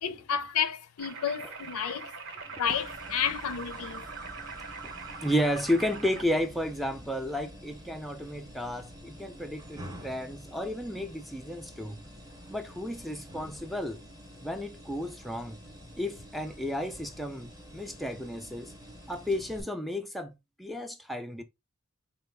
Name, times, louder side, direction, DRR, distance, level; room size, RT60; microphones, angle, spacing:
voice 1, 0.0-2.1 2.6-4.0, left 8 dB, 75° left, 0.5 m, -31 dB
sound 1, 1.0-6.2, right 4 dB, 60° right, 0.8 m, -42 dB
sound 2, 2.7-19.6, equal, 15° right, 0.7 m, -48 dB
voice 2, 5.2-12.0 12.5-14.0 14.4-15.6 16.0-18.7 19.1-20.3 20.6-21.4, left 1 dB, ahead, 0.4 m, -32 dB
4.5 x 2.3 x 3.3 m
head